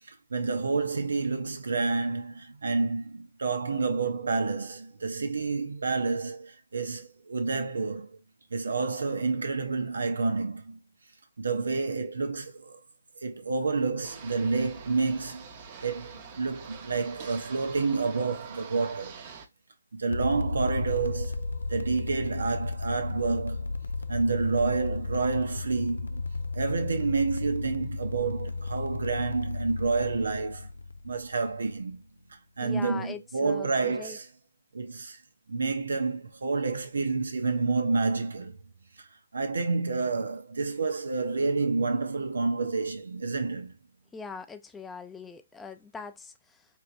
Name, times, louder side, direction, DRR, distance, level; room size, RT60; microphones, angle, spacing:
voice 1, 0.1-8.2 8.5-10.8 11.4-12.8 13.2-15.4 15.8-19.2 19.9-23.7 24.1-26.2 26.5-30.7 31.0-32.0 32.3-34.3 34.7-35.2 35.5-38.6 39.0-39.1 39.3-43.7, right 4 dB, 85° right, 0.9 m, -29 dB
sound 1, 14.0-19.5, right 6 dB, 35° right, 0.8 m, -45 dB
sound 2, 20.1-31.8, left 3 dB, 90° left, 0.4 m, -34 dB
voice 2, 32.6-34.2 44.1-46.7, left 4 dB, 5° left, 0.4 m, -42 dB
4.5 x 3.0 x 2.6 m
hypercardioid pair, 155°, 0 cm